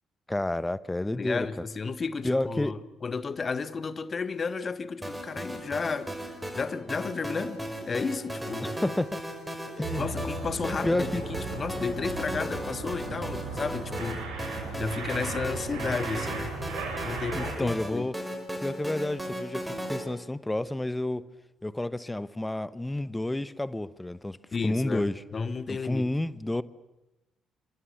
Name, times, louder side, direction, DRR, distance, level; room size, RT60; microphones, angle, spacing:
voice 1, 0.3-1.5 2.2-2.7 8.6-9.2 9.7-10.0 10.8-11.2 17.3-18.1 18.6-21.2 21.6-24.4 24.6-25.2 25.7-26.6, left 1 dB, 10° left, 1.1 m, -30 dB
voice 2, 1.1-8.7 10.0-16.6 17.0-18.1 24.5-26.1, left 5 dB, 35° left, 1.4 m, -33 dB
sound 1, 5.0-20.0, equal, 5° right, 5.3 m, -36 dB
sound 2, 9.8-17.7, right 4 dB, 65° right, 6.6 m, -36 dB
29.5 x 26.0 x 7.2 m
figure-of-eight pair, 45°, 0 cm